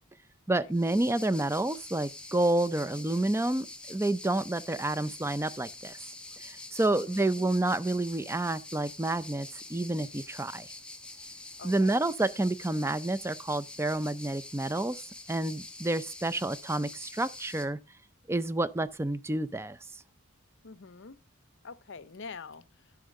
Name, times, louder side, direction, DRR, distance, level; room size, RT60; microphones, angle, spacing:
voice 1, 0.5-6.0 6.4-10.7 11.6-15.0 15.3-17.8 18.3-19.8, right 2 dB, 10° right, 0.4 m, -29 dB
sound 1, 0.7-17.7, left 2 dB, 5° left, 1.2 m, -46 dB
voice 2, 2.6-3.1 6.8-7.5 11.6-12.0 20.6-21.2 21.6-22.6, left 4 dB, 60° left, 0.7 m, -46 dB
11.5 x 4.7 x 6.4 m
head